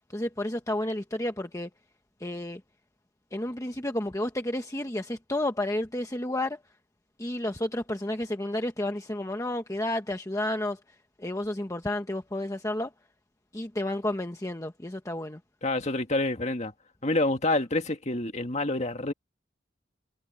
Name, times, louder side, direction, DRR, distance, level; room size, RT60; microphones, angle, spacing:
voice 1, 0.1-1.7 2.2-2.6 3.3-6.6 7.2-10.8 11.2-12.9 13.5-15.4, left 1 dB, 15° left, 1.1 m, -31 dB
voice 2, 15.6-16.7 17.0-19.1, left 2 dB, 35° left, 2.0 m, -27 dB
head